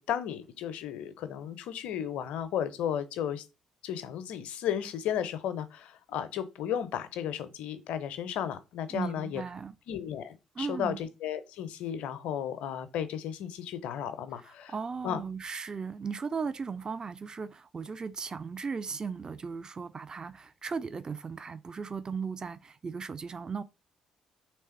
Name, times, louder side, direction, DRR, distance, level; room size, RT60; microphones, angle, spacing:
voice 1, 0.0-3.4 3.8-9.4 9.9-14.7 15.0-15.2, left 9 dB, 65° left, 0.5 m, -34 dB
voice 2, 8.9-9.7 10.6-11.0 14.4-23.6, right 5 dB, 30° right, 0.3 m, -37 dB
3.3 x 3.2 x 4.3 m
figure-of-eight pair, 40°, 2 cm